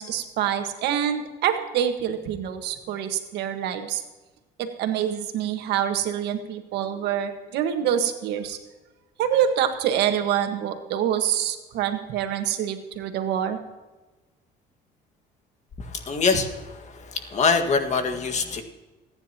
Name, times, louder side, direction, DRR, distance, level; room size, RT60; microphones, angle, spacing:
voice 1, 0.0-4.0 4.6-8.6 9.2-13.6, right 9 dB, 85° right, 6 dB, 1.6 m, -26 dB
voice 2, 16.1-16.5 17.3-18.6, left 4 dB, 45° left, 6 dB, 1.8 m, -22 dB
27.0 x 9.9 x 3.0 m, 1.2 s
cardioid pair, 110°, 17 cm